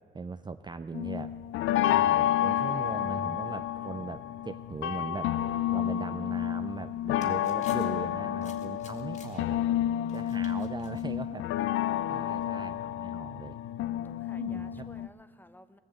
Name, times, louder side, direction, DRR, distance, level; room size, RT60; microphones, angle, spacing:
voice 1, 0.1-1.3 1.9-5.3 5.7-9.6 10.1-11.5 12.1-13.6 14.3-14.9, right 4 dB, 20° right, 10 dB, 0.4 m, -39 dB
sound 1, 0.9-15.1, left 11 dB, 80° left, 0.4 m, -30 dB
voice 2, 5.3-5.8 9.3-9.9 10.2-10.5 11.9-12.4 14.0-15.8, left 1 dB, 10° left, 11 dB, 0.8 m, -54 dB
sound 2, 6.7-11.9, left 4 dB, 35° left, 1.8 m, -56 dB
19.5 x 6.9 x 7.9 m, 2.1 s
cardioid pair, 90°, 20 cm